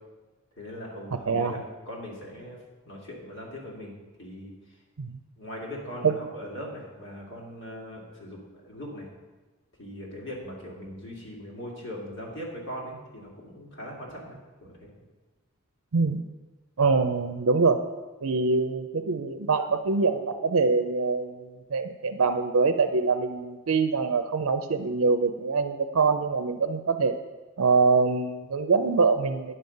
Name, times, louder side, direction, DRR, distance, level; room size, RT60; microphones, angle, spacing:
voice 1, 0.6-1.6 1.9-3.9 4.2-4.5 5.4-9.1 9.8-14.9, equal, 60° left, -3 dB, 2.9 m, -40 dB
voice 2, 1.1-1.5 5.0-5.2 6.0-6.2 15.9-16.2 16.8-17.9 18.2-27.2 27.6-29.6, right 4 dB, 85° right, 7 dB, 0.6 m, -24 dB
9.7 x 5.5 x 7.8 m, 1.2 s
head